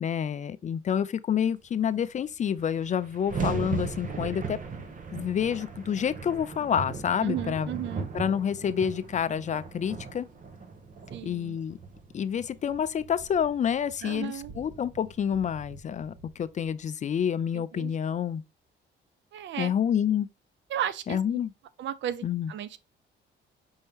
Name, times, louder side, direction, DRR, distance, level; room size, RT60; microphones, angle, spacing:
voice 1, 0.0-4.6 5.1-7.7 8.1-10.3 11.2-11.8 12.1-18.4 19.6-20.3 21.1-21.5 22.2-22.5, left 8 dB, 40° left, 0.4 m, -28 dB
sound 1, 2.1-2.2 2.4-16.7, right 4 dB, 40° right, 1.0 m, -38 dB
voice 2, 7.2-8.1 11.1-11.6 14.0-14.5 17.5-18.0 19.3-19.7 20.7-21.2 21.8-22.8, right 11 dB, 70° right, 0.5 m, -34 dB
5.4 x 2.8 x 3.5 m
cardioid pair, 90°, 20 cm